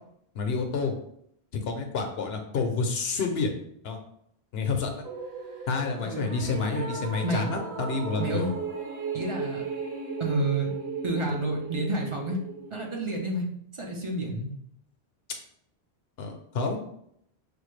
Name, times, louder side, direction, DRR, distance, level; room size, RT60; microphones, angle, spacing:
voice 1, 0.3-0.9 1.5-3.5 3.8-4.0 4.5-5.0 5.7-8.5 16.2-16.8, left 4 dB, 70° left, 4 dB, 0.8 m, -29 dB
sound 1, 5.0-13.3, right 5 dB, 70° right, 1.0 m, -36 dB
voice 2, 8.2-8.5 9.1-9.6 10.2-10.7 11.0-12.4 12.7-13.5 13.7-14.5, right 2 dB, 35° right, -1 dB, 0.6 m, -29 dB
5.2 x 2.2 x 3.1 m, 0.71 s
omnidirectional pair, 1.1 m